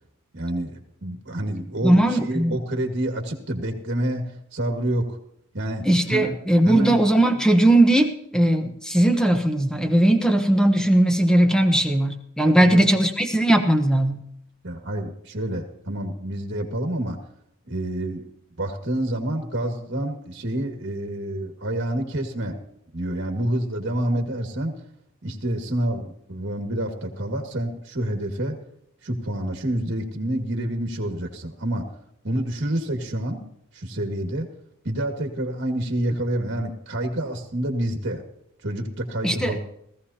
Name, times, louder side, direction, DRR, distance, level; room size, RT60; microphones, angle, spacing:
voice 1, 0.3-5.2 5.5-6.4 6.6-7.0 12.6-13.0 14.6-17.2 17.7-18.3 18.6-22.6 22.9-24.8 25.2-28.6 29.0-31.9 32.2-33.4 33.7-34.5 34.8-38.2 38.6-39.6, right 1 dB, 55° right, 4 dB, 1.9 m, -28 dB
voice 2, 1.8-2.6 5.8-14.2 39.2-39.6, right 1 dB, 5° left, 6 dB, 1.0 m, -19 dB
18.0 x 15.0 x 2.8 m, 0.74 s
head